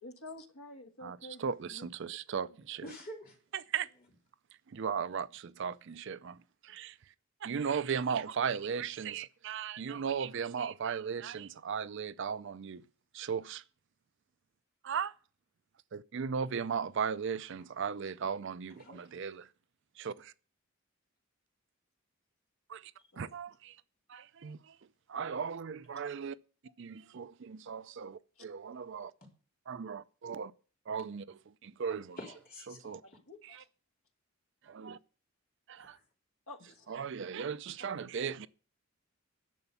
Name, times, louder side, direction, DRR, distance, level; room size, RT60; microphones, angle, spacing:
voice 1, 0.0-2.2 23.1-23.3 33.0-33.6 36.5-37.0, left 2 dB, 75° left, 1.4 m, -50 dB
voice 2, 1.0-2.8 3.5-3.9 4.7-6.4 6.6-6.9 7.4-12.8 13.1-13.6 14.8-15.1 15.9-19.5 20.0-20.3 22.7-22.8 23.2-23.8 24.1-24.7 25.1-26.4 26.8-29.1 29.7-30.5 30.9-32.2 32.7-33.0 33.4-33.6 34.7-35.0 35.7-36.0 36.9-38.5, right 6 dB, 55° right, 0.4 m, -37 dB
voice 3, 2.8-3.4 18.8-19.0 23.0-23.1 32.2-33.0 35.8-36.0 37.8-38.0, equal, 40° left, 3.6 m, -47 dB
11.0 x 6.9 x 7.0 m
head